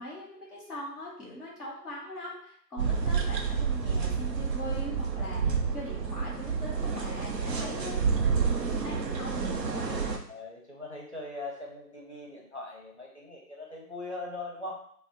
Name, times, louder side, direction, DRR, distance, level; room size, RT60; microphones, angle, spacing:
voice 1, 0.0-8.0 8.5-9.9, left 1 dB, ahead, -4 dB, 0.5 m, -41 dB
sound 1, 2.8-10.2, right 5 dB, 80° right, 0.7 m, -29 dB
voice 2, 7.5-7.9 10.3-14.8, left 2 dB, 45° left, -2 dB, 0.5 m, -41 dB
2.5 x 2.0 x 3.8 m, 0.64 s
figure-of-eight pair, 165°, 50 cm